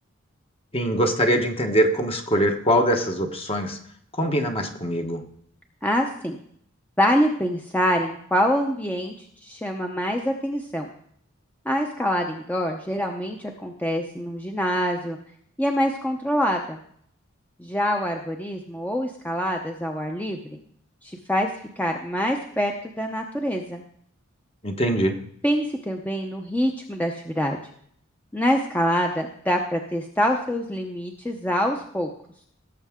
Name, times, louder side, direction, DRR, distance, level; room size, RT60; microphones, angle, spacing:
voice 1, 0.7-3.8 4.2-5.2 24.6-25.2, equal, 30° left, 5 dB, 1.2 m, -22 dB
voice 2, 5.8-6.4 7.0-9.1 9.4-10.9 11.7-15.2 15.6-16.8 17.6-20.4 21.0-21.5 21.8-22.7 23.0-23.8 25.4-27.6 28.3-32.1, equal, 10° left, 2 dB, 0.7 m, -25 dB
17.5 x 7.3 x 3.7 m, 0.64 s
head